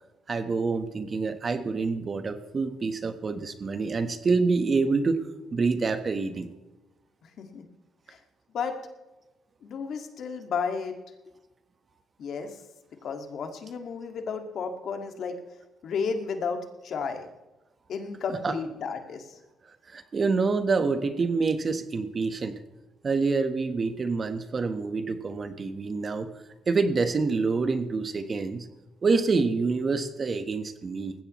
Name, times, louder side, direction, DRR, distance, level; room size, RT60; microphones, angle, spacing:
voice 1, 0.3-5.2 5.5-6.5 18.4-18.5 19.9-22.5 23.0-26.3 26.7-28.7 29.0-31.1, right 4 dB, 40° right, 9 dB, 1.3 m, -27 dB
voice 2, 9.6-10.9 12.2-12.5 13.0-15.4 15.8-17.3 17.9-19.4, left 5 dB, 65° left, 5 dB, 2.0 m, -32 dB
20.0 x 15.5 x 3.2 m, 1.1 s
cardioid pair, 90°, 0 cm